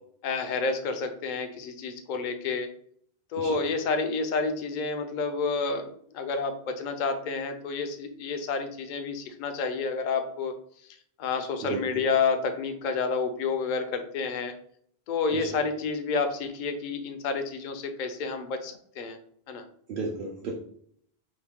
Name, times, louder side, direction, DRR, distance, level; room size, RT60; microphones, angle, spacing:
voice 1, 0.2-2.7 3.3-10.5 11.2-14.5 15.1-19.2 19.5-19.6, left 4 dB, 60° left, 7 dB, 0.6 m, -29 dB
voice 2, 11.6-12.0 15.3-15.6 19.9-20.5, right 3 dB, 65° right, -1 dB, 0.7 m, -34 dB
2.9 x 2.5 x 3.5 m, 0.63 s
omnidirectional pair, 1.1 m